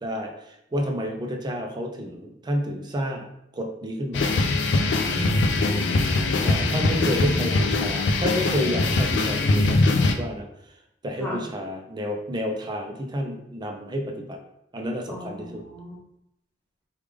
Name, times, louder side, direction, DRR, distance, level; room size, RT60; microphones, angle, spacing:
voice 1, 0.0-3.3 3.5-4.4 6.4-10.5 11.0-14.4 14.7-15.6, equal, 25° right, 2 dB, 0.4 m, -30 dB
sound 1, 4.1-10.1, left 2 dB, 65° left, 0.4 m, -22 dB
voice 2, 5.0-6.1 11.2-11.4 15.1-15.9, equal, 10° left, -6 dB, 1.0 m, -35 dB
3.3 x 2.3 x 3.3 m, 0.79 s
head